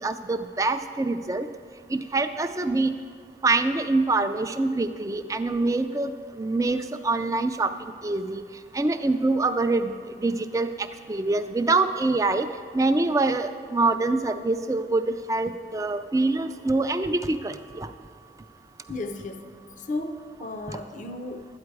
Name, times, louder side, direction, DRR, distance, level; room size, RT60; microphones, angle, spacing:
voice 1, 0.0-1.5 1.9-2.9 3.4-7.7 8.0-8.4 8.7-9.9 10.2-10.7 11.1-12.5 12.7-17.9, right 3 dB, 20° right, 9 dB, 0.3 m, -25 dB
voice 2, 18.9-19.5 19.8-21.5, left 2 dB, 45° left, 7 dB, 0.6 m, -34 dB
12.5 x 9.5 x 4.7 m, 2.1 s
head